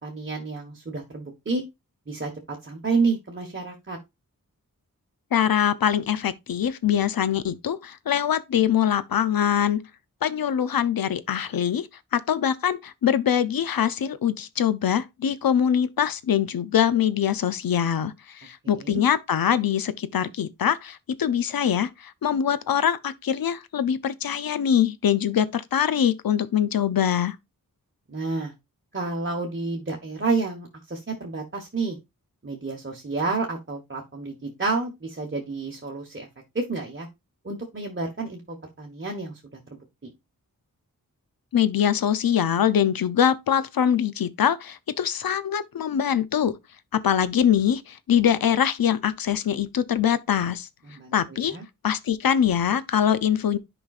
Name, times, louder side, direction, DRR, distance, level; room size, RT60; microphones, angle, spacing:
voice 1, 0.0-1.6 2.1-4.0 18.6-19.0 28.1-28.5 28.9-32.0 32.4-36.3 36.5-37.1 37.4-40.1 50.9-51.6, right 3 dB, 35° right, 1.3 m, -30 dB
voice 2, 5.3-9.9 10.2-27.4 41.5-46.6 46.9-50.7 51.1-51.6 51.8-53.6, left 9 dB, 80° left, 0.6 m, -23 dB
10.5 x 5.2 x 2.4 m
wide cardioid pair, 95°, 35 cm